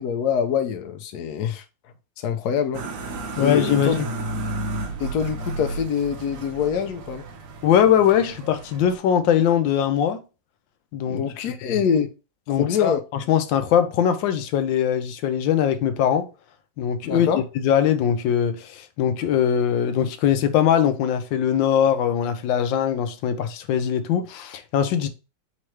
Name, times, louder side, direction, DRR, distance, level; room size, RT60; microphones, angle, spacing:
voice 1, 0.0-1.6 2.2-2.9 3.4-4.0 5.0-7.2 11.1-12.1 12.6-13.0 17.0-17.4, left 7 dB, 70° left, 1.1 m, -24 dB
sound 1, 2.7-9.0, right 2 dB, 60° right, 1.0 m, -33 dB
voice 2, 3.4-4.1 7.6-10.2 10.9-11.2 11.7-11.8 12.5-16.3 16.8-17.3 17.5-25.1, left 9 dB, 90° left, 1.3 m, -21 dB
3.7 x 3.2 x 4.5 m
omnidirectional pair, 2.0 m